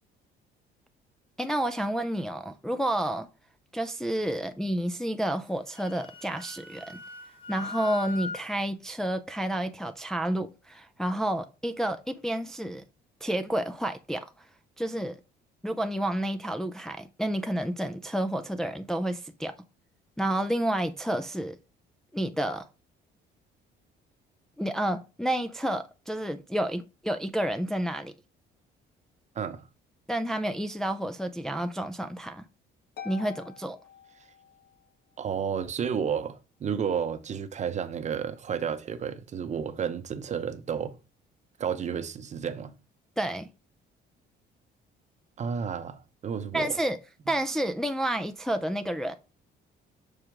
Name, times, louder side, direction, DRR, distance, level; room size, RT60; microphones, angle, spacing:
voice 1, 1.4-3.3 3.7-7.0 7.5-12.8 13.2-14.3 14.8-15.2 15.6-19.5 20.2-21.6 22.1-22.7 24.6-28.1 30.1-32.4 33.0-33.8 43.2-43.5 46.5-47.0 47.3-49.2, right 1 dB, 5° left, 0.4 m, -30 dB
Wind instrument woodwind instrument, 5.5-8.4, left 3 dB, 30° left, 1.5 m, -40 dB
voice 2, 29.3-29.7 35.2-41.0 41.6-42.7 45.4-46.8, right 7 dB, 40° right, 0.8 m, -31 dB
Harp, 33.0-34.8, left 9 dB, 60° left, 1.2 m, -46 dB
6.5 x 4.8 x 3.5 m
cardioid pair, 120°, 19 cm